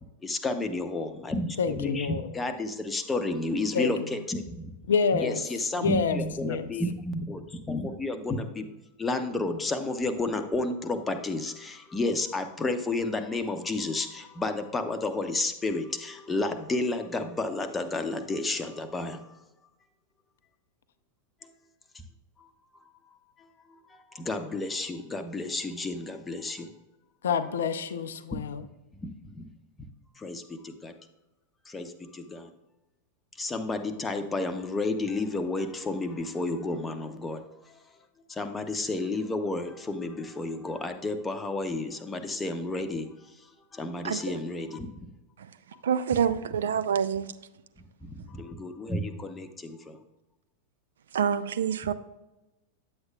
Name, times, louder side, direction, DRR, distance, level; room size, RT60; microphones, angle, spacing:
voice 1, 0.2-4.7 5.1-8.7 9.0-19.3 22.4-22.5 23.9-26.7 29.0-29.5 30.2-30.9 31.7-32.5 33.4-37.8 38.3-43.2 43.7-44.9 48.0-50.0, left 2 dB, 15° left, 0.7 m, -31 dB
voice 2, 1.6-2.3 3.7-3.9 4.9-5.4 5.8-6.7 27.2-28.6, left 5 dB, 60° left, 0.5 m, -27 dB
voice 3, 45.8-47.3 51.1-51.9, right 8 dB, 65° right, 0.3 m, -26 dB
9.5 x 7.9 x 2.3 m
figure-of-eight pair, 90°, 0 cm